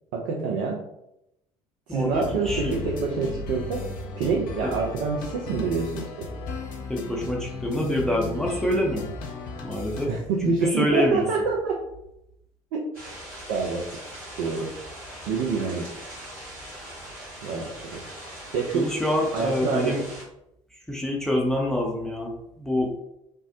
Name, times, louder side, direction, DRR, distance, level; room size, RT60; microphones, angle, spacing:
voice 1, 0.1-0.8 1.9-3.9 4.2-6.3 10.1-11.7 13.5-13.8 14.4-14.7 15.3-15.9 17.4-18.0 18.5-18.9 19.3-19.9, right 4 dB, 60° right, -1 dB, 0.5 m, -26 dB
voice 2, 1.9-2.8 4.6-4.7 6.9-9.1 9.6-10.1 10.4-11.3 18.7-20.0 20.7-22.9, left 1 dB, 5° left, -1 dB, 0.6 m, -26 dB
sound 1, 2.1-10.1, left 4 dB, 55° left, 0.6 m, -36 dB
sound 2, 12.9-20.2, equal, 85° right, 1.4 m, -41 dB
3.4 x 2.0 x 2.7 m, 0.82 s
figure-of-eight pair, 55°, 18 cm